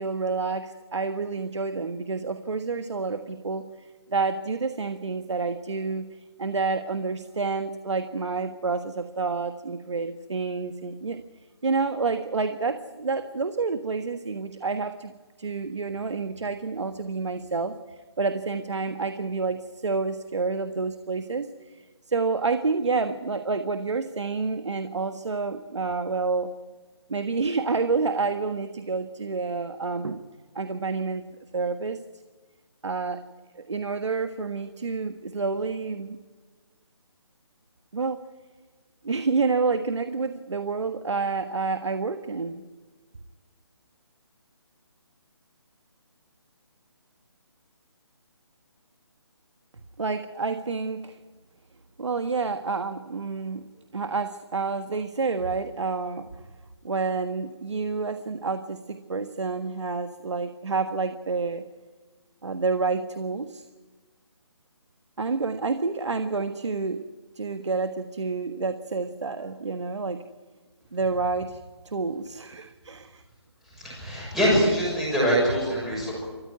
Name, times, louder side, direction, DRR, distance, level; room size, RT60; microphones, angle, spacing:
voice 1, 0.0-11.2 11.6-15.1 15.4-17.7 18.2-26.5 27.1-30.2 30.5-32.0 32.8-33.2 33.5-36.2 37.9-38.2 39.0-42.6 50.0-51.2 52.0-53.6 53.9-56.2 56.8-61.6 62.4-63.6 65.2-67.0 67.3-70.2 70.9-73.2, right 4 dB, 85° right, 8 dB, 1.4 m, -29 dB
voice 2, 73.7-76.1, equal, ahead, -7 dB, 6.6 m, -23 dB
29.5 x 14.5 x 9.5 m, 1.4 s
hypercardioid pair, 175°, 14 cm